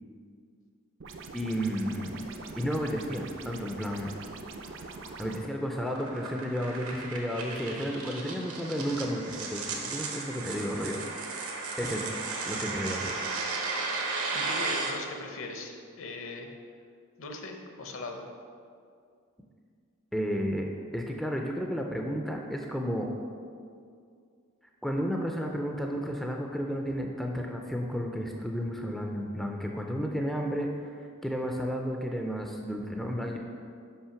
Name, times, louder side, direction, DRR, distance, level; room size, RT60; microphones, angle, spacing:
sound 1, 1.0-5.4, right 3 dB, 55° right, 0.5 m, -43 dB
voice 1, 1.3-2.2 2.6-4.1 5.2-11.0 11.8-12.2 12.5-13.1 20.1-20.7 20.9-23.1 24.8-33.4, equal, ahead, 1 dB, 0.4 m, -32 dB
sound 2, 4.2-14.9, right 3 dB, 75° right, 1.0 m, -35 dB
voice 2, 14.3-16.6 17.2-18.2, left 2 dB, 65° left, 3 dB, 0.8 m, -40 dB
5.6 x 5.4 x 5.7 m, 2.3 s
head